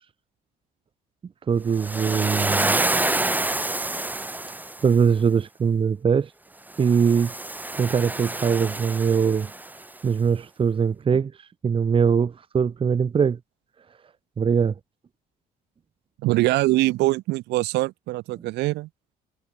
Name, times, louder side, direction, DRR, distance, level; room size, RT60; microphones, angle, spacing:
voice 1, 1.5-2.8 4.8-6.3 6.8-7.3 7.8-9.5 10.0-11.3 11.6-13.4 14.4-14.7, right 6 dB, 30° right, 1.2 m, -21 dB
Waves surf, 1.7-4.9 6.7-9.8, right 2 dB, 10° right, 3.3 m, -27 dB
voice 2, 16.2-18.9, right 19 dB, 85° right, 3.0 m, -23 dB
cardioid pair, 110°, 17 cm